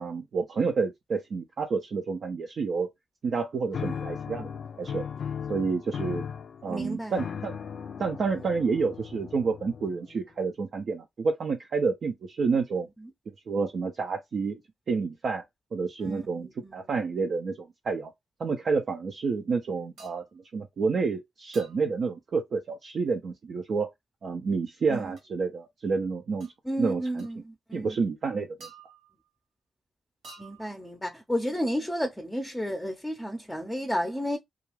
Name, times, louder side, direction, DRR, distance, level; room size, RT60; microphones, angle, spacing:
voice 1, 0.0-2.9 3.2-5.1 5.5-6.3 6.6-7.6 8.0-12.9 13.5-14.6 14.9-15.4 15.7-18.1 18.4-20.2 20.5-23.9 24.2-26.5 26.8-27.3 27.7-28.7, right 4 dB, 65° right, 0.5 m, -29 dB
sound 1, 3.7-10.2, left 7 dB, 65° left, 0.3 m, -37 dB
voice 2, 6.7-7.1 8.3-8.5 12.7-12.8 16.0-16.7 24.9-25.1 26.6-27.9 30.4-34.4, equal, 10° left, 0.6 m, -32 dB
sound 2, 20.0-20.3 21.5-21.9 25.2-25.3 26.4-26.6 27.2-27.3 28.6-29.3 30.2-30.9, right 4 dB, 85° right, 1.1 m, -50 dB
2.3 x 2.3 x 3.1 m
supercardioid pair, 55°, 0 cm